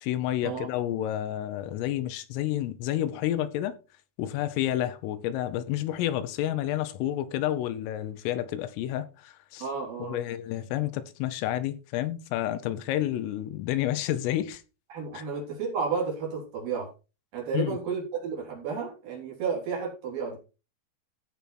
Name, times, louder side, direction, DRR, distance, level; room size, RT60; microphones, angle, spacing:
voice 1, 0.0-3.8 4.2-9.7 10.0-14.6 15.2-15.3 17.5-17.8, left 13 dB, 80° left, 3.4 m, -30 dB
voice 2, 9.6-10.2 14.9-16.9 17.3-20.4, right 5 dB, 45° right, 4.6 m, -32 dB
15.0 x 5.4 x 4.4 m
omnidirectional pair, 5.9 m